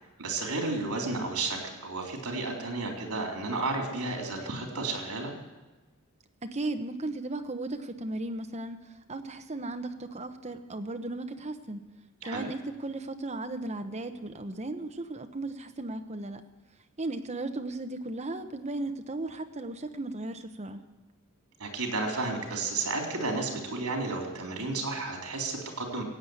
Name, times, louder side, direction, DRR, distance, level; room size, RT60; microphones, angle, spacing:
voice 1, 0.2-5.3 12.2-12.4 21.6-26.0, right 3 dB, 80° right, 1 dB, 3.8 m, -32 dB
voice 2, 6.4-8.8 9.1-11.9 12.2-16.4 17.0-20.8, right 2 dB, 30° right, 7 dB, 1.0 m, -36 dB
16.5 x 8.7 x 8.1 m, 1.2 s
head